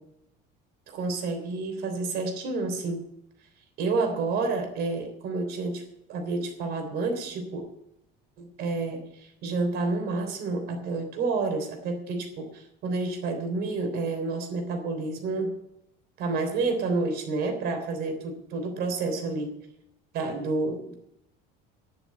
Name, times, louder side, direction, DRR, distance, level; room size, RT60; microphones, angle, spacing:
voice 1, 0.9-3.0 3.8-5.8 6.1-7.6 8.4-15.5 16.2-19.5 20.1-20.9, right 3 dB, 50° right, 5 dB, 3.5 m, -29 dB
10.5 x 8.0 x 9.5 m, 0.83 s
cardioid pair, 175°, 21 cm